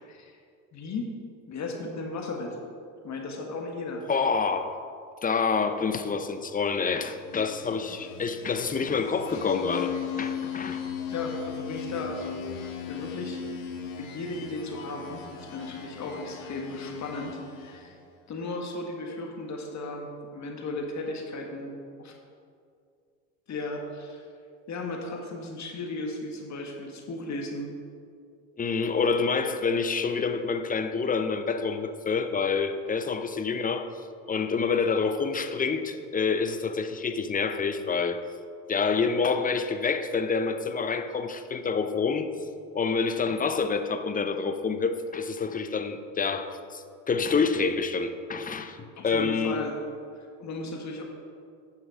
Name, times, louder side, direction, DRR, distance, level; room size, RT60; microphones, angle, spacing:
voice 1, 0.7-1.1 1.5-2.6 3.0-4.0 11.1-13.4 14.0-18.0 18.3-21.7 22.0-22.1 23.5-24.2 24.7-27.7 33.5-33.6 49.0-49.7 50.4-51.0, left 2 dB, 40° left, 1 dB, 1.6 m, -35 dB
voice 2, 4.1-4.8 5.2-10.8 28.6-33.9 34.3-38.2 38.7-42.3 42.7-49.6, left 5 dB, 20° left, 9 dB, 0.6 m, -27 dB
sound 1, 7.1-18.0, left 8 dB, 80° left, 1.4 m, -38 dB
9.5 x 5.7 x 5.0 m, 2.3 s
hypercardioid pair, 80°, 41 cm